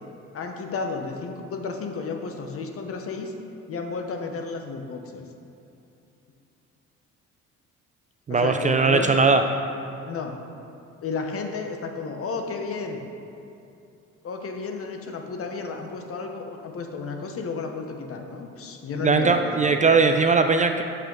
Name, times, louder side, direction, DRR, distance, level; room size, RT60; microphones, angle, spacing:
voice 1, 0.3-3.3 3.7-5.2 8.3-9.2 10.0-10.4 11.0-13.0 14.2-19.5, left 4 dB, 50° left, 4 dB, 0.9 m, -32 dB
voice 2, 8.3-9.4 19.0-20.8, right 4 dB, 25° right, 6 dB, 0.4 m, -19 dB
6.6 x 6.0 x 3.9 m, 2.7 s
supercardioid pair, 75°, 30 cm